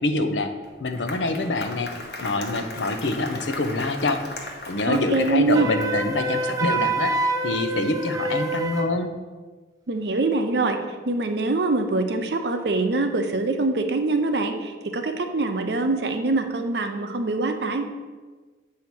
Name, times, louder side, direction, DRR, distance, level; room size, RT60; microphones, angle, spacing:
voice 1, 0.0-0.5 0.8-1.9 2.2-4.2 4.7-9.1, left 2 dB, 85° left, 7 dB, 0.7 m, -25 dB
Applause, 0.6-6.1, left 2 dB, 60° left, 1.0 m, -37 dB
voice 2, 4.9-5.7 9.9-10.8 11.1-17.8, right 3 dB, 65° right, 6 dB, 0.6 m, -24 dB
Wind instrument woodwind instrument, 5.5-8.9, right 2 dB, 20° right, 0.4 m, -26 dB
8.2 x 2.8 x 6.0 m, 1.4 s
head